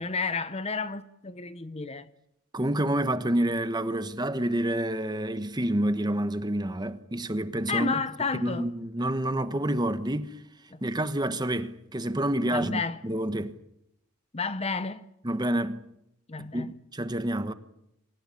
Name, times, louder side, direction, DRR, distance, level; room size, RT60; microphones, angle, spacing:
voice 1, 0.0-2.1 7.7-8.7 10.7-10.8 12.5-13.0 14.3-15.0 16.3-16.7, left 4 dB, 25° left, 0.8 m, -31 dB
voice 2, 2.5-8.0 8.3-10.4 10.8-13.5 15.2-15.8 16.4-17.5, right 1 dB, 20° right, 1.1 m, -28 dB
26.0 x 16.0 x 10.0 m
head